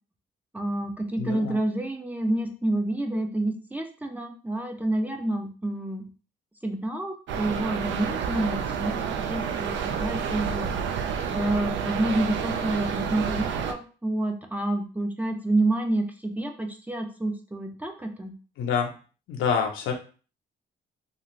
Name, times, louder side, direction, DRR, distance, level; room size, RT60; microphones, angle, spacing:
voice 1, 0.5-6.1 6.6-9.0 9.3-10.7 11.3-18.3, right 1 dB, 10° right, 3 dB, 0.5 m, -28 dB
voice 2, 1.2-1.6 18.6-18.9 19.3-19.9, left 6 dB, 85° left, 2 dB, 0.7 m, -26 dB
sound 1, 7.3-13.7, right 7 dB, 70° right, 0.4 m, -29 dB
2.5 x 2.4 x 3.1 m, 0.37 s
cardioid pair, 90°, 20 cm